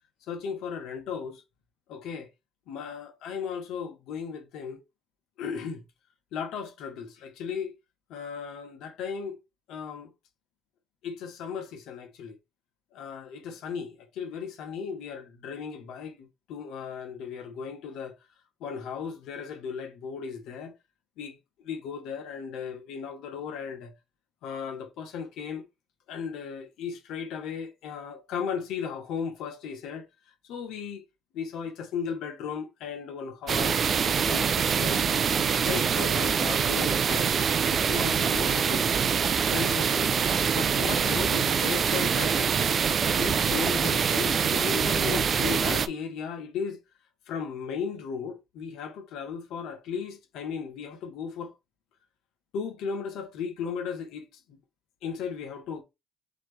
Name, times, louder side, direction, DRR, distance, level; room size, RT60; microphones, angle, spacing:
voice 1, 0.3-1.4 1.9-2.3 2.7-4.8 5.4-5.8 6.3-7.7 8.1-9.4 9.7-10.1 11.0-12.4 12.9-18.2 18.6-20.7 21.2-21.3 21.6-23.9 24.4-25.6 26.1-30.1 30.5-31.0 31.3-33.8 34.2-35.1 35.6-37.3 37.6-38.9 39.5-40.1 40.5-42.5 43.1-46.8 47.3-51.5 52.5-54.6 55.0-55.8, left 6 dB, 75° left, 1.1 m, -36 dB
sound 1, 33.5-45.9, right 7 dB, 45° right, 0.4 m, -25 dB
4.1 x 3.1 x 3.2 m
cardioid pair, 95°, 0 cm